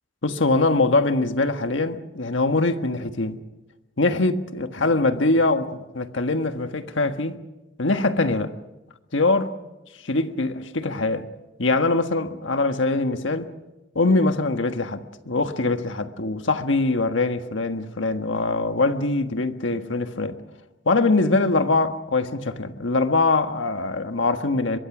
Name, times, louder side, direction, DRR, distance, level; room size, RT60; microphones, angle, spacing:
voice 1, 0.2-3.4 4.0-7.4 7.8-8.5 9.1-9.5 10.0-11.3 11.6-13.5 13.9-20.4 20.8-24.8, left 3 dB, 85° left, 1.5 m, -23 dB
23.5 x 22.5 x 6.1 m
head